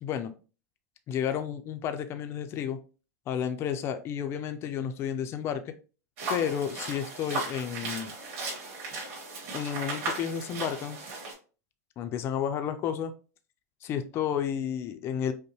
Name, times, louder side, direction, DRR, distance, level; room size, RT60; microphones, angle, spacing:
voice 1, 0.0-0.3 1.1-2.8 3.3-5.7 6.3-8.2 9.5-11.0 12.0-13.1 13.8-15.3, left 8 dB, 30° left, 9 dB, 0.5 m, -31 dB
sound 1, 6.2-11.3, right 3 dB, 55° right, 2.1 m, -36 dB
5.3 x 2.1 x 3.0 m, 0.36 s
supercardioid pair, 150°, 9 cm